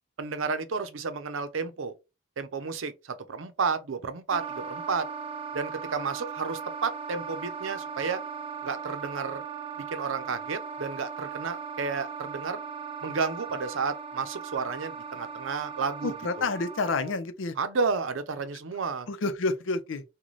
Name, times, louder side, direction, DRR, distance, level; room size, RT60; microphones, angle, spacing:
voice 1, 0.2-1.9 2.4-5.1 5.5-8.2 8.6-9.4 9.8-12.6 13.0-16.5 17.6-19.1, right 5 dB, 85° right, 0.6 m, -32 dB
Wind instrument woodwind instrument, 4.3-17.2, right 6 dB, 30° right, 0.4 m, -38 dB
voice 2, 16.0-17.5 19.1-20.0, left 3 dB, 80° left, 0.6 m, -29 dB
3.1 x 2.2 x 3.9 m
head